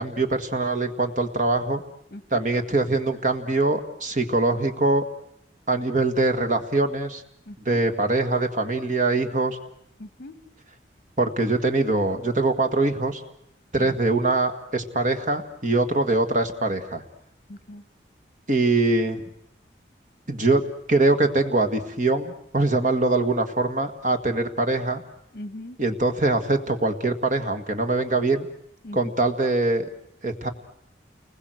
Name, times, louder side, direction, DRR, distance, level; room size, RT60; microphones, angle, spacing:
voice 1, 0.0-1.8 2.3-5.0 5.7-7.2 7.7-9.6 11.2-13.2 13.7-17.0 18.5-19.2 20.3-20.6 20.9-25.0 25.8-28.5 28.9-29.9 30.2-30.5, right 2 dB, 45° right, 6 dB, 1.8 m, -23 dB
voice 2, 2.1-2.4 7.5-7.8 10.0-10.4 13.8-13.9 17.5-17.8 25.3-25.8 28.8-29.0, left 1 dB, 55° left, 14 dB, 1.5 m, -39 dB
29.0 x 21.0 x 7.9 m, 0.76 s
head